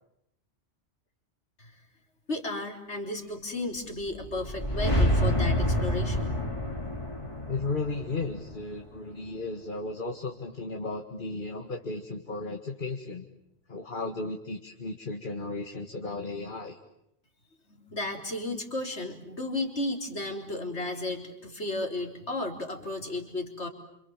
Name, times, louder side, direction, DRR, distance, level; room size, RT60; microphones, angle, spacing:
voice 1, 2.3-6.3 17.7-23.7, left 2 dB, 65° left, 3 dB, 4.2 m, -34 dB
sound 1, 4.1-9.2, equal, 25° left, 4.0 m, -28 dB
voice 2, 7.5-13.3 13.7-16.8, left 3 dB, 45° left, 4 dB, 2.0 m, -35 dB
28.5 x 27.5 x 7.4 m, 0.81 s
omnidirectional pair, 1.2 m